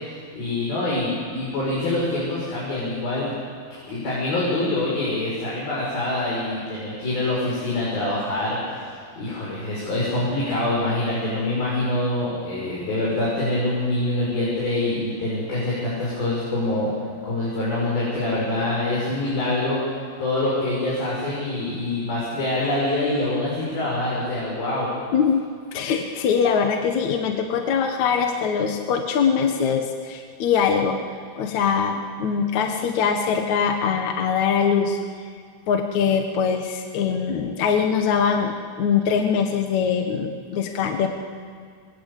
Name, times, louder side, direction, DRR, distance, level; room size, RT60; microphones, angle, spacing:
voice 1, 0.3-3.3 3.9-8.9 9.2-16.9 17.2-19.9 20.2-24.9, left 2 dB, 85° left, -6 dB, 8.1 m, -25 dB
voice 2, 25.7-31.0 31.4-35.0 35.7-41.1, left 6 dB, 60° left, 4 dB, 2.5 m, -22 dB
27.5 x 22.5 x 8.5 m, 2.1 s
omnidirectional pair, 4.1 m